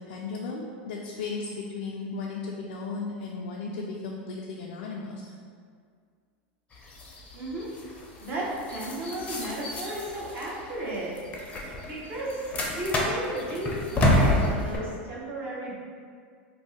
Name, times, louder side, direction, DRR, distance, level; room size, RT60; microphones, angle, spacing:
voice 1, 0.1-5.2, left 4 dB, 80° left, -2 dB, 0.3 m, -35 dB
sound 1, 6.7-14.8, left 1 dB, 25° left, 0.5 m, -29 dB
voice 2, 7.3-7.7 8.2-11.2 11.8-15.9, right 1 dB, 40° right, -5 dB, 0.8 m, -34 dB
2.6 x 2.1 x 3.8 m, 2.1 s
supercardioid pair, 115°, 6 cm